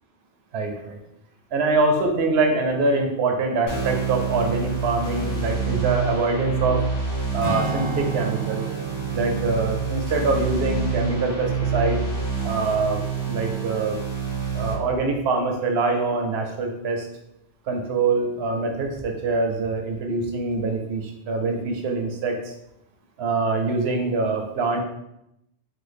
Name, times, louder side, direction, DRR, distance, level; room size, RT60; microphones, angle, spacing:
voice 1, 0.5-1.0 1.5-6.8 7.3-8.7 9.1-12.0 12.4-14.0 14.5-17.1 17.7-22.5 23.2-24.8, right 3 dB, 75° right, 3 dB, 0.8 m, -24 dB
sound 1, 3.7-14.7, right 5 dB, 85° left, 1.9 m, -27 dB
Strum, 7.4-12.1 12.5-12.7, right 3 dB, 40° right, 0.5 m, -34 dB
3.3 x 2.2 x 3.3 m, 0.82 s
omnidirectional pair, 1.1 m